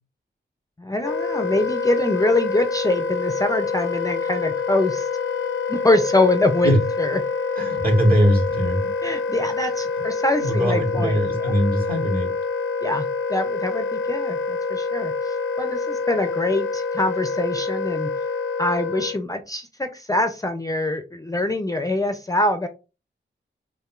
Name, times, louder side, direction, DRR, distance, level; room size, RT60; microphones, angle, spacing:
voice 1, 0.8-5.1 5.7-6.7 7.0-7.2 9.0-11.5 12.8-18.1 18.6-22.7, left 2 dB, 15° left, 0.5 m, -24 dB
Wind instrument woodwind instrument, 1.0-19.2, left 4 dB, 80° left, 0.4 m, -26 dB
voice 2, 7.6-8.9 9.9-10.0 10.4-12.3, equal, 45° right, 2.2 m, -21 dB
6.5 x 2.6 x 2.5 m
wide cardioid pair, 85°, 20 cm